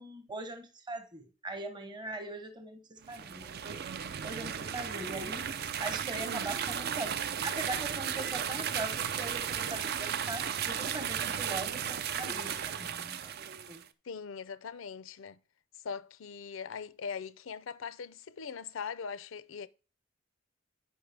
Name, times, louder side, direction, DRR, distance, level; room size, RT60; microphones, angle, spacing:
voice 1, 0.0-3.8 4.2-5.5 5.8-13.3 13.7-13.8, right 2 dB, 25° right, 0.9 m, -41 dB
sound 1, 3.0-13.8, right 8 dB, 55° right, 0.5 m, -35 dB
voice 2, 14.0-15.4 15.7-19.7, left 6 dB, 75° left, 0.5 m, -41 dB
9.4 x 5.5 x 3.4 m
head